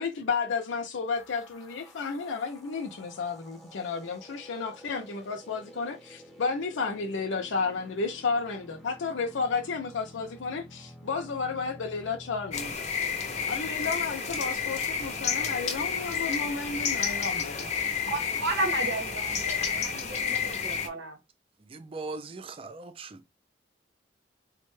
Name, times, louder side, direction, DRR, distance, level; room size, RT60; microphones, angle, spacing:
voice 1, 0.0-12.8 13.5-17.7, left 4 dB, 90° left, 0.5 m, -32 dB
sound 1, 1.1-12.7, equal, ahead, 0.7 m, -51 dB
sound 2, 12.5-20.9, left 6 dB, 35° left, 0.5 m, -30 dB
voice 2, 18.1-21.2, right 2 dB, 80° right, 0.9 m, -33 dB
voice 3, 21.7-23.3, right 3 dB, 30° right, 0.3 m, -40 dB
3.5 x 2.1 x 3.1 m
head